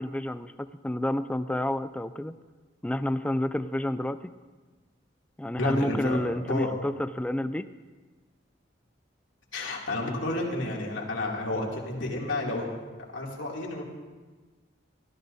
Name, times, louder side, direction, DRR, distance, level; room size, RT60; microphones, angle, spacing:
voice 1, 0.0-2.3 2.8-4.2 5.4-7.7, left 1 dB, 5° left, 11 dB, 0.4 m, -29 dB
voice 2, 5.6-6.7 9.5-12.7 13.1-13.8, left 2 dB, 85° left, -2 dB, 2.7 m, -31 dB
24.0 x 14.0 x 2.7 m, 1.3 s
head